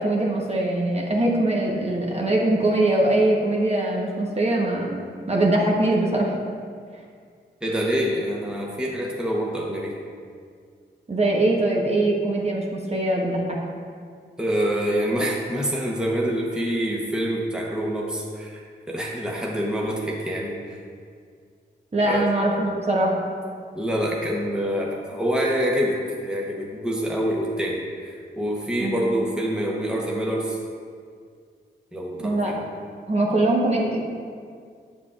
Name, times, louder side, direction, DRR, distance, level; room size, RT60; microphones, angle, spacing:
voice 1, 0.0-5.0 5.3-6.3 11.1-13.6 21.9-23.1 28.8-29.0 32.2-32.5 33.1-34.1, right 1 dB, 35° right, -2 dB, 1.1 m, -22 dB
voice 2, 7.6-9.9 14.4-18.6 18.9-20.8 22.0-22.3 23.7-30.6 31.9-32.6, equal, 5° right, -3 dB, 1.0 m, -26 dB
7.5 x 6.9 x 2.5 m, 2.1 s
cardioid pair, 60°, 19 cm